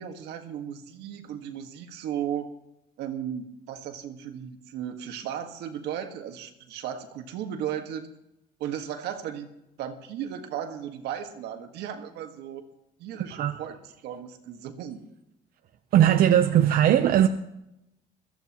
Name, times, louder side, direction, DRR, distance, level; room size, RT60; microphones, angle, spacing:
voice 1, 0.0-2.5 3.0-8.1 8.6-9.5 9.8-12.6 13.0-15.0, right 9 dB, 85° right, 1.7 m, -35 dB
voice 2, 15.9-17.3, right 11 dB, 60° right, 0.7 m, -19 dB
22.0 x 14.5 x 3.0 m
cardioid pair, 110°, 17 cm